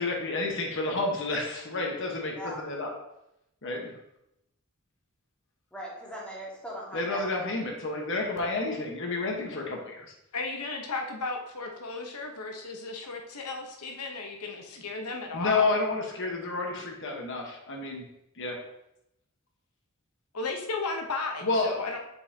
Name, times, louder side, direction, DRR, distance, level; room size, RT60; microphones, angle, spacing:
voice 1, 0.0-2.9 3.6-3.9 6.9-10.0 15.3-18.0 18.4-18.6 21.4-21.8, left 3 dB, 60° left, 1 dB, 1.1 m, -30 dB
voice 2, 5.7-7.6, equal, 5° left, -6 dB, 1.7 m, -40 dB
voice 3, 10.3-15.7 20.3-22.0, left 3 dB, 90° left, 2 dB, 0.9 m, -34 dB
7.3 x 5.5 x 2.8 m, 0.84 s
head